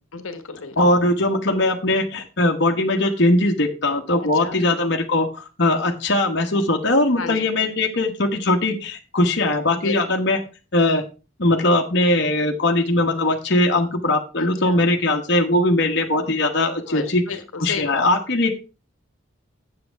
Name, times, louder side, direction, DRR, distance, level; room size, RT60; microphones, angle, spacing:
voice 1, 0.1-0.7 4.4-4.6 7.2-7.5 9.8-10.0 14.4-14.8 16.9-17.4 17.7-18.0, left 4 dB, 75° left, 9 dB, 1.2 m, -32 dB
voice 2, 0.8-10.4 10.7-11.0 11.4-17.2 17.6-18.5, left 2 dB, 55° left, 2 dB, 1.2 m, -20 dB
7.8 x 7.6 x 4.5 m, 0.31 s
head